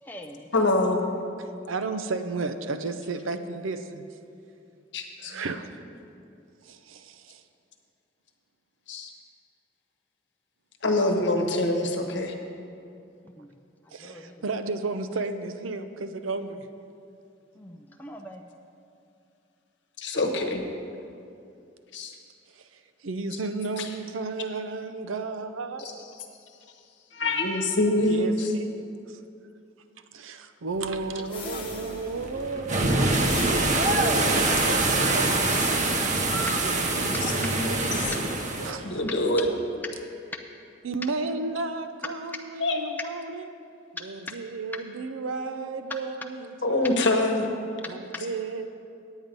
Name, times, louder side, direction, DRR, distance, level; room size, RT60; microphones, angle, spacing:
voice 1, 0.0-0.5 5.3-5.4 13.4-13.5 14.0-14.4 17.6-18.4 48.1-48.2, left 1 dB, 10° left, 2 dB, 0.4 m, -43 dB
voice 2, 0.5-1.0 4.9-5.3 8.9-9.1 10.8-12.4 20.0-20.6 21.9-22.1 23.8-23.9 25.8-25.9 27.1-28.5 31.4-31.6 37.0-38.1 38.8-39.5 42.6-42.8 46.6-47.5, left 2 dB, 65° left, 3 dB, 1.1 m, -25 dB
voice 3, 1.4-4.0 5.2-5.8 6.6-7.4 13.9-16.7 22.5-22.7 23.0-25.9 28.0-29.2 30.1-35.3 36.2-37.4 38.6-39.0 40.8-43.5 44.0-47.2 47.8-48.7, right 3 dB, 85° right, 9 dB, 0.6 m, -33 dB
sound 1, 31.0-38.7, right 2 dB, 35° right, 0.8 m, -25 dB
sound 2, 31.3-32.5 33.1-34.0 35.0-36.2, left 5 dB, 25° left, 1.3 m, -42 dB
9.6 x 9.0 x 5.2 m, 2.6 s
head